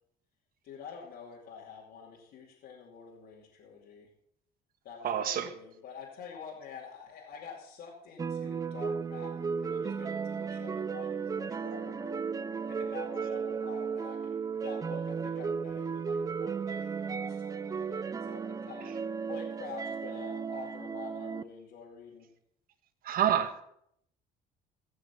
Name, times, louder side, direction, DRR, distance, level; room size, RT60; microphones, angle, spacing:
voice 1, 0.6-4.1 4.8-12.2 12.7-18.9 19.3-22.3, left 6 dB, 75° left, -4 dB, 2.6 m, -47 dB
voice 2, 5.0-5.5 23.0-23.6, right 9 dB, 60° right, 9 dB, 1.4 m, -28 dB
sound 1, 8.2-21.4, right 6 dB, 20° right, 0.4 m, -35 dB
16.5 x 6.5 x 5.9 m, 0.73 s
cardioid pair, 110°, 17 cm